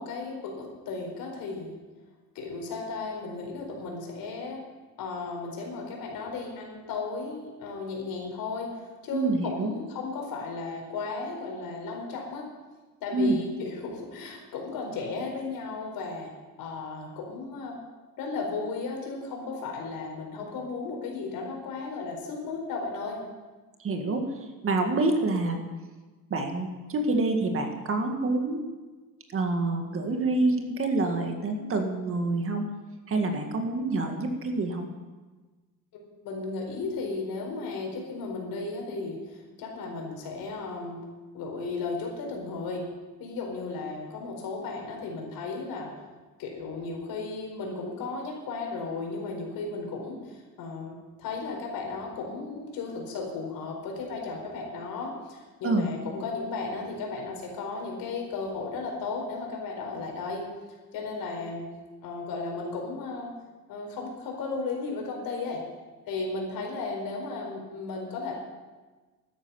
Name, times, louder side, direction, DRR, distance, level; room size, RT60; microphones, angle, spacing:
voice 1, 0.0-1.7 2.3-4.6 5.0-12.4 13.0-16.3 16.6-17.8 18.2-23.2 36.2-41.0 41.3-42.8 43.2-45.9 46.4-60.4 60.9-61.6 62.0-63.3 63.7-65.6 66.1-68.3, left 3 dB, 75° left, 1 dB, 4.6 m, -35 dB
voice 2, 9.1-9.7 13.1-13.4 23.8-25.7 26.3-28.6 29.3-32.7 33.1-34.9 55.6-55.9, right 2 dB, 40° right, 4 dB, 1.9 m, -27 dB
12.5 x 10.0 x 7.1 m, 1.3 s
cardioid pair, 145°, 35 cm